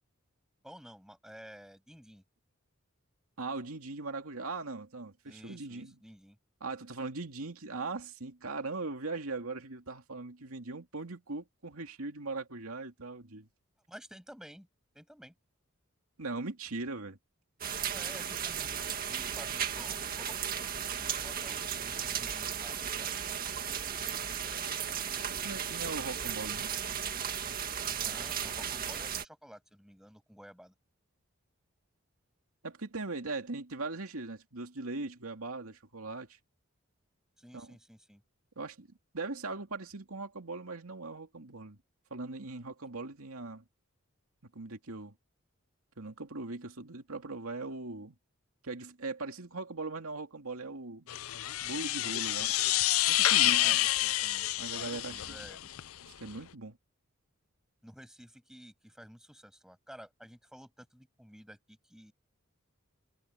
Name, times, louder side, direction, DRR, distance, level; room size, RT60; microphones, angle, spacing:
voice 1, 0.6-2.2 5.3-6.4 13.9-14.7 14.9-15.4 17.9-20.4 20.7-23.1 23.5-24.6 28.0-30.7 37.4-38.2 53.5-54.5 54.8-55.6 57.8-62.1, equal, 5° right, 7.4 m, -52 dB
voice 2, 3.4-6.0 6.6-13.5 16.2-17.2 25.3-26.7 32.6-36.4 37.5-37.8 38.6-38.9 39.1-41.8 42.1-43.6 44.5-45.1 46.0-48.2 48.6-51.1 51.6-52.7 53.1-53.8 54.6-55.5 56.0-56.8, right 3 dB, 90° right, 2.5 m, -40 dB
sound 1, 17.6-29.3, right 8 dB, 40° right, 1.9 m, -35 dB
sound 2, 51.1-55.8, left 15 dB, 85° left, 0.6 m, -28 dB
head